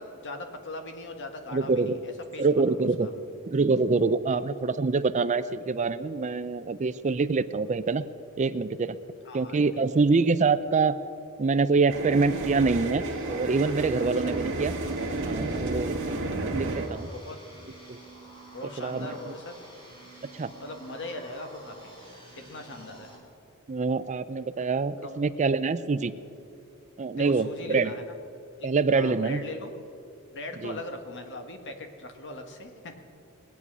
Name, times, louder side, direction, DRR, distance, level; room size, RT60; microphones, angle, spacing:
voice 1, 0.0-2.5 2.8-3.1 4.3-4.4 9.2-10.2 14.0-14.6 17.1-17.4 18.5-19.6 20.6-21.9 22.4-23.1 25.0-25.2 27.2-28.0 28.6-29.7 30.3-33.0, left 2 dB, 55° left, 5 dB, 1.4 m, -40 dB
voice 2, 1.5-2.0 2.4-3.1 3.5-8.0 8.4-9.0 9.3-11.0 11.4-14.7 15.2-16.0 16.2-17.1 17.9-18.0 18.8-19.1 20.3-20.5 23.7-26.1 27.0-27.9 28.6-29.4 30.6-30.8, right 4 dB, 35° right, 13 dB, 0.5 m, -25 dB
sound 1, 11.9-16.9, right 2 dB, 60° right, 1.7 m, -31 dB
sound 2, 13.0-23.2, right 2 dB, 25° left, 2.9 m, -49 dB
21.0 x 8.3 x 6.1 m, 2.6 s
head